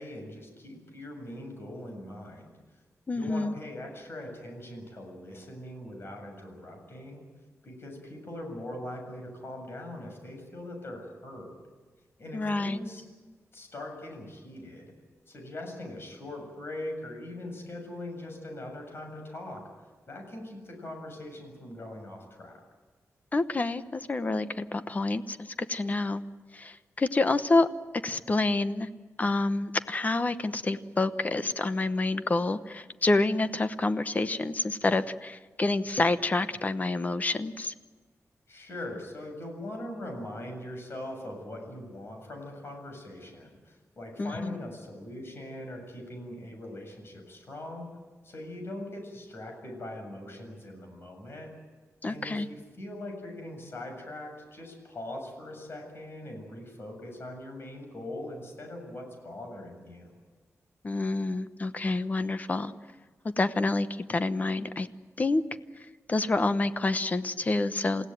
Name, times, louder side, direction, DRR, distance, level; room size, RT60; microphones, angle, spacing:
voice 1, 0.0-2.6 3.1-7.2 7.6-11.6 12.2-13.0 13.5-14.9 15.3-19.6 20.1-22.6 38.5-47.9 48.2-51.5 52.0-60.2, left 1 dB, 45° left, 3 dB, 7.3 m, -41 dB
voice 2, 3.1-3.6 12.3-12.8 23.3-26.2 26.5-27.7 28.0-28.9 29.2-37.7 44.2-44.6 52.0-52.5 60.8-62.7 63.4-64.9 65.2-65.4 66.1-68.1, left 2 dB, 30° left, 11 dB, 0.9 m, -28 dB
28.5 x 16.5 x 9.3 m, 1.4 s
wide cardioid pair, 170°, 6 cm